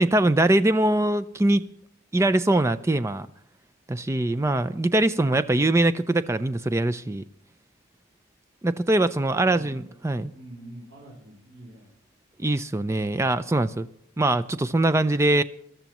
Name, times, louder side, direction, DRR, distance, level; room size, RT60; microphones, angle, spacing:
voice 1, 0.0-1.6 2.1-3.3 3.9-7.2 8.6-10.3 12.4-13.9 14.2-15.4, right 1 dB, 15° right, 0.4 m, -22 dB
voice 2, 9.0-10.0 10.3-11.9, right 1 dB, 60° right, 4.8 m, -45 dB
22.5 x 13.0 x 3.0 m
head